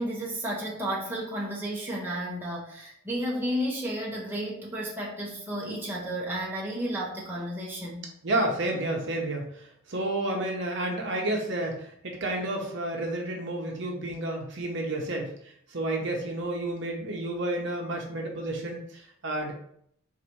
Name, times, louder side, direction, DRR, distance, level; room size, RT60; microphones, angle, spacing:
voice 1, 0.0-8.0, equal, 10° right, -4 dB, 0.9 m, -32 dB
voice 2, 8.2-15.3 15.7-19.5, right 1 dB, 60° right, 1 dB, 0.8 m, -30 dB
4.0 x 2.6 x 4.5 m, 0.69 s
head